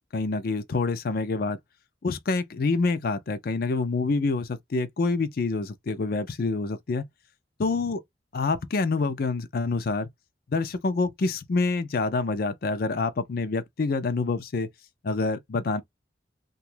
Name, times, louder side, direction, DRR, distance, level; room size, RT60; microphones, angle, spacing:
voice 1, 0.1-1.6 2.0-7.1 7.6-8.0 8.3-10.1 10.5-14.7 15.0-15.8, left 3 dB, 55° left, 0.4 m, -27 dB
3.0 x 2.3 x 3.2 m
head